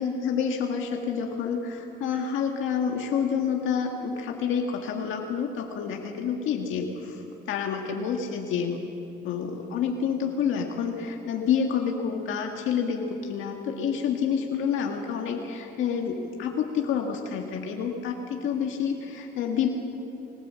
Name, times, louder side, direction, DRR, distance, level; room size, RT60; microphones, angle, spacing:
voice 1, 0.0-7.2 7.5-8.8 9.2-19.7, left 7 dB, 85° left, 2 dB, 1.7 m, -28 dB
21.5 x 19.0 x 7.6 m, 2.7 s
cardioid pair, 90°, 20 cm